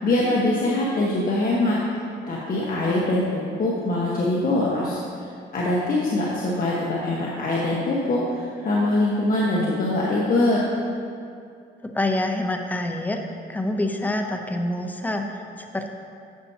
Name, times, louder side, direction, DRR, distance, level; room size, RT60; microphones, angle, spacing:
voice 1, 0.0-1.8 2.3-5.0 5.5-10.6, left 2 dB, 45° left, -6 dB, 1.3 m, -23 dB
voice 2, 11.9-13.2 13.5-15.9, left 1 dB, 10° left, 4 dB, 0.7 m, -26 dB
11.5 x 6.9 x 2.8 m, 2.4 s
cardioid pair, 90°, 20 cm